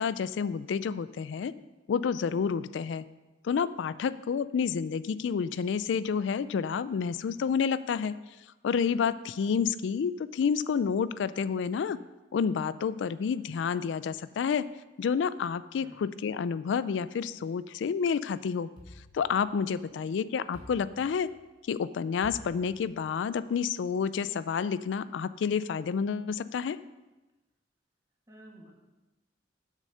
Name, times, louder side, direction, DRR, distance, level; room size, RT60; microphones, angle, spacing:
voice 1, 0.0-1.5 1.9-3.0 3.4-8.1 8.6-12.0 12.3-14.7 15.0-18.7 19.1-21.3 21.6-26.8, left 6 dB, 85° left, 16 dB, 0.3 m, -29 dB
sound 1, 18.8-19.9 20.5-21.6 22.2-23.3, left 1 dB, 30° left, 2.6 m, -51 dB
voice 2, 28.3-28.7, right 1 dB, 20° right, -2 dB, 1.7 m, -52 dB
7.5 x 6.3 x 6.6 m, 1.1 s
head